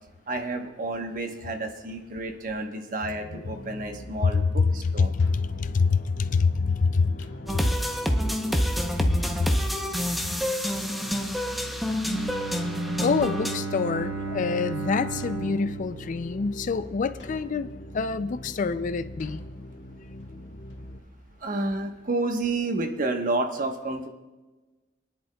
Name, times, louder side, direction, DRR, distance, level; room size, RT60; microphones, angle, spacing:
voice 1, 0.3-5.1 21.4-24.1, right 2 dB, 50° right, 4 dB, 1.1 m, -30 dB
sound 1, 3.5-21.0, equal, 80° left, 1.3 m, -42 dB
voice 2, 5.0-7.7 9.0-9.5 11.8-12.1 13.0-17.7 17.9-19.4, left 4 dB, 45° left, 13 dB, 0.4 m, -26 dB
sound 2, 7.5-13.6, equal, ahead, 0.8 m, -27 dB
Bowed string instrument, 12.0-17.0, right 4 dB, 75° right, 4.6 m, -34 dB
24.5 x 10.5 x 2.3 m, 1.2 s
head